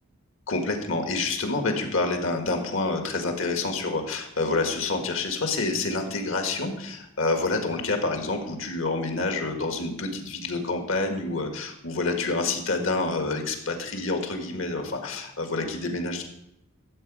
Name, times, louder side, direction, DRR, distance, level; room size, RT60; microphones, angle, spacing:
voice 1, 0.5-16.2, left 3 dB, 70° left, 4 dB, 1.7 m, -28 dB
13.0 x 7.9 x 4.8 m, 0.81 s
head